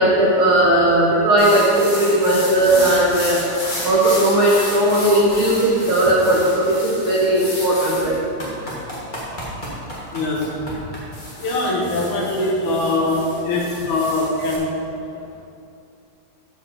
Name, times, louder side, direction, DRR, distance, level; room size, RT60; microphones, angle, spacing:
voice 1, 0.0-3.4 3.8-8.2, right 1 dB, 80° right, -5 dB, 1.1 m, -17 dB
sound 1, 1.4-14.5, left 1 dB, 35° left, 0.7 m, -32 dB
voice 2, 10.1-10.5 11.4-14.8, left 2 dB, 70° left, -2 dB, 2.3 m, -22 dB
13.5 x 4.9 x 4.4 m, 2.6 s
omnidirectional pair, 3.9 m